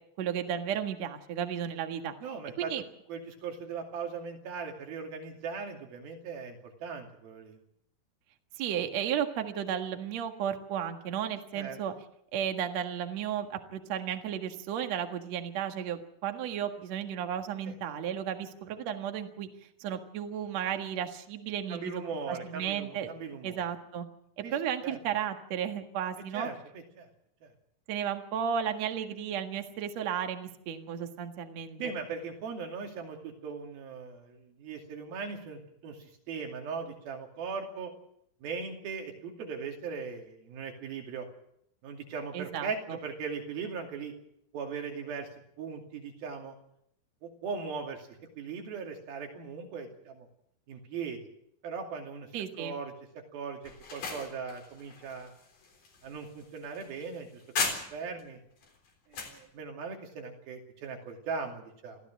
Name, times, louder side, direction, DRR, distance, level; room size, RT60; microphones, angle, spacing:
voice 1, 0.2-2.1 2.6-2.8 8.6-11.9 12.3-19.5 19.8-21.9 22.3-23.1 23.4-24.1 24.4-26.5 27.9-31.8 42.3-43.0 52.3-52.7, right 9 dB, 55° right, 5 dB, 2.5 m, -34 dB
voice 2, 2.2-2.7 3.1-7.6 11.5-11.8 17.6-17.7 21.7-23.6 24.4-24.5 24.8-25.0 26.3-27.1 27.4-27.5 31.7-37.9 38.4-41.3 41.8-44.1 44.5-45.3 45.6-46.6 47.2-50.3 50.7-51.2 51.6-52.3 52.6-52.9 53.3-55.3 56.0-57.4 57.9-58.4 59.1-62.0, right 5 dB, 75° right, 3 dB, 4.4 m, -39 dB
sound 1, 53.6-58.2 58.6-59.4, left 4 dB, 60° left, 5.3 m, -37 dB
24.0 x 15.0 x 7.4 m, 0.74 s
omnidirectional pair, 4.3 m